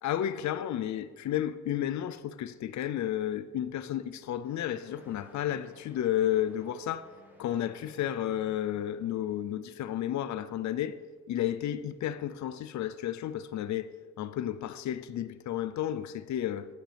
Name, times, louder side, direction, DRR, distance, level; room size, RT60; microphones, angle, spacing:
voice 1, 0.0-7.1 7.4-11.0 11.3-13.9 14.2-16.7, left 11 dB, 70° left, 0.6 m, -32 dB
sound 1, 4.4-9.5, equal, 5° right, 2.1 m, -59 dB
14.5 x 8.8 x 3.4 m
cardioid pair, 90°, 30 cm